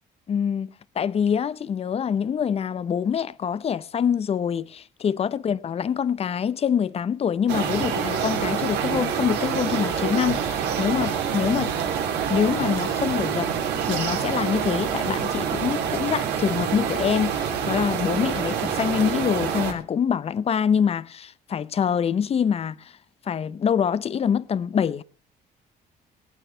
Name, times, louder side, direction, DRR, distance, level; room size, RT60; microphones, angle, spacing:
voice 1, 0.3-11.7 12.3-13.5 13.8-22.9 23.3-25.0, left 7 dB, 35° left, 0.7 m, -25 dB
sound 1, 7.5-19.7, right 7 dB, 85° right, 3.3 m, -26 dB
19.0 x 8.9 x 5.5 m
cardioid pair, 110°, 17 cm